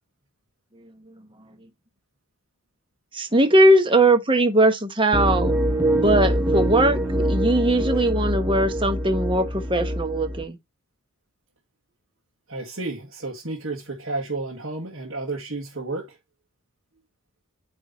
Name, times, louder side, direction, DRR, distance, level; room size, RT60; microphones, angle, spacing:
voice 1, 3.1-5.5 5.9-10.6, right 1 dB, 25° right, 1.2 m, -20 dB
sound 1, 5.1-10.4, right 1 dB, 10° right, 0.8 m, -24 dB
voice 2, 12.5-16.2, right 3 dB, 60° right, 1.8 m, -31 dB
9.1 x 3.5 x 4.1 m
head